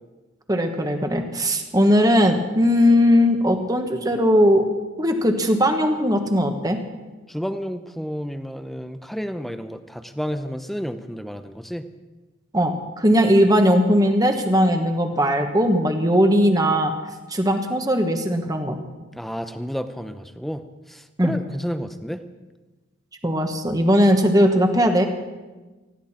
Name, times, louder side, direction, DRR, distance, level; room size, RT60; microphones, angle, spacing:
voice 1, 0.5-4.7 5.0-6.8 12.5-16.9 17.3-18.8 21.2-21.3 23.2-25.1, equal, 20° right, 5 dB, 1.4 m, -19 dB
voice 2, 7.3-11.9 19.1-20.6 20.9-22.2, equal, ahead, 9 dB, 0.7 m, -31 dB
20.0 x 15.0 x 4.4 m, 1.2 s
head